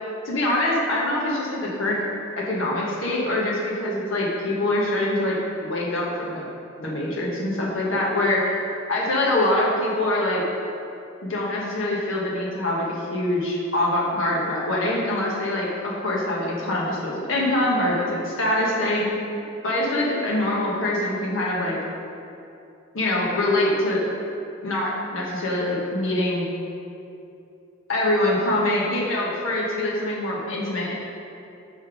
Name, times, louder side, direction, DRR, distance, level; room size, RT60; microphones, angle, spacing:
voice 1, 0.2-2.0 2.4-5.4 5.6-6.5 6.8-8.4 8.9-10.4 11.2-19.1 19.6-21.8 22.9-24.0 24.6-26.5 27.9-31.0, left 1 dB, 80° left, -4 dB, 1.3 m, -24 dB
5.5 x 5.0 x 5.0 m, 2.7 s
head